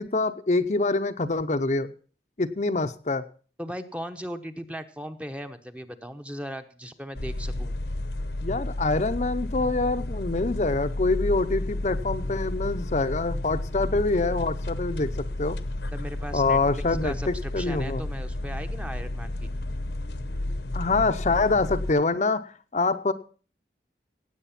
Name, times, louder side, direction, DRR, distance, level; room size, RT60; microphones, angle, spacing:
voice 1, 0.0-1.9 2.4-3.2 8.4-15.1 15.4-15.6 16.3-18.1 20.7-22.4 22.7-23.1, left 3 dB, 40° left, 9 dB, 0.7 m, -25 dB
voice 2, 3.6-7.7 15.9-19.5, equal, 5° right, 8 dB, 0.9 m, -38 dB
sound 1, 7.1-21.9, left 1 dB, 70° left, 1.0 m, -32 dB
17.0 x 7.9 x 5.8 m, 0.39 s
head